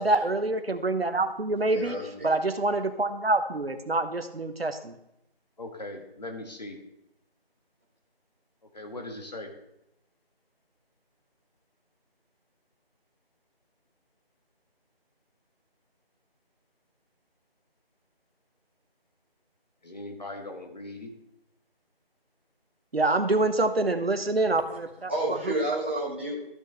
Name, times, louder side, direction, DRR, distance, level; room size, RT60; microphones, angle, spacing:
voice 1, 0.0-5.0 22.9-25.1, right 2 dB, 75° right, 9 dB, 1.1 m, -26 dB
voice 2, 1.7-2.3 25.1-26.4, right 1 dB, 10° right, -6 dB, 1.1 m, -30 dB
voice 3, 5.6-6.8 8.7-9.5 19.8-21.1, left 2 dB, 45° left, 2 dB, 1.5 m, -39 dB
13.5 x 6.4 x 3.4 m, 0.84 s
figure-of-eight pair, 165°, 30 cm